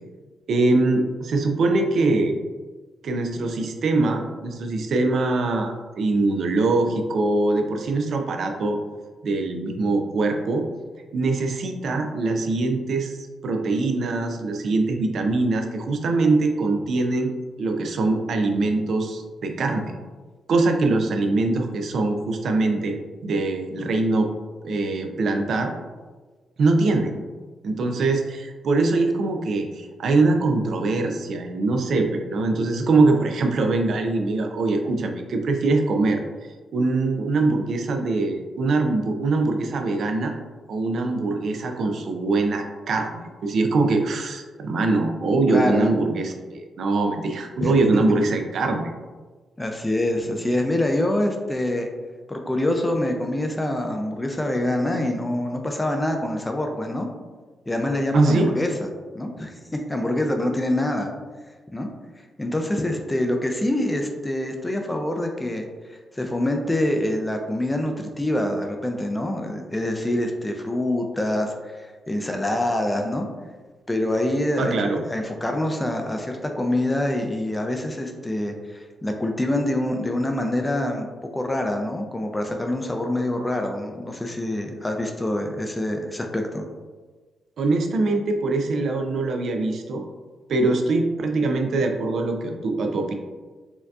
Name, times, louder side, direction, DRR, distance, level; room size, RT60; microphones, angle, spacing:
voice 1, 0.5-2.4 3.0-8.8 9.2-10.7 11.1-13.2 13.4-17.3 17.6-19.9 20.5-23.0 23.2-24.3 24.6-25.7 26.6-27.2 27.6-36.2 36.7-40.3 40.7-48.9 50.3-50.4 58.1-58.5 74.6-75.0 87.6-90.0 90.5-93.1, right 3 dB, 60° right, 4 dB, 0.4 m, -23 dB
voice 2, 45.5-45.9 47.6-48.0 49.6-51.9 52.3-57.1 57.7-61.1 61.7-61.9 62.4-73.3 73.9-81.1 81.3-86.7, left 1 dB, 10° left, 3 dB, 0.4 m, -25 dB
4.3 x 2.7 x 2.3 m, 1.4 s
wide cardioid pair, 145°, 0 cm